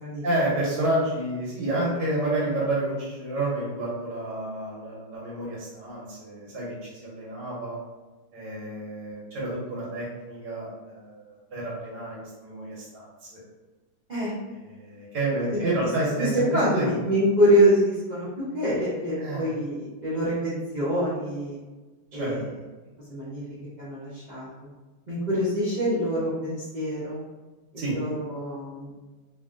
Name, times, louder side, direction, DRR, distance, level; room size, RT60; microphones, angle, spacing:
voice 1, 0.2-7.8 8.3-13.4 14.6-16.5 16.7-16.9 19.2-19.5 22.1-22.3 27.8-27.9, right 1 dB, 90° right, -6 dB, 1.5 m, -29 dB
voice 2, 16.2-18.3 18.5-21.6 22.1-22.4 23.1-23.4 23.8-24.5 25.1-27.2 27.7-28.9, equal, 65° right, -10 dB, 0.4 m, -25 dB
3.2 x 2.4 x 2.4 m, 1.2 s
omnidirectional pair, 1.9 m